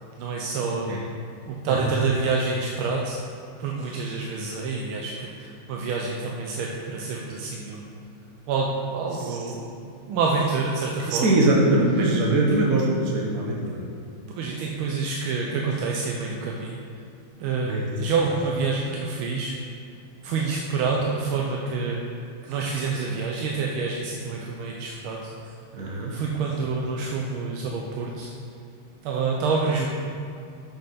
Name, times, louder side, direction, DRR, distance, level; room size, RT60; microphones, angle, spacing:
voice 1, 0.2-0.9 1.5-3.2 3.6-7.8 8.5-11.5 12.5-12.6 14.4-16.8 17.4-19.6 20.2-22.0 22.4-25.5 26.1-28.3 29.0-29.9, right 4 dB, 90° right, -1 dB, 1.5 m, -27 dB
voice 2, 11.1-13.8 17.6-17.9 25.7-26.1, right 2 dB, 50° right, -2 dB, 1.2 m, -22 dB
7.8 x 6.8 x 4.2 m, 2.5 s
omnidirectional pair, 2.2 m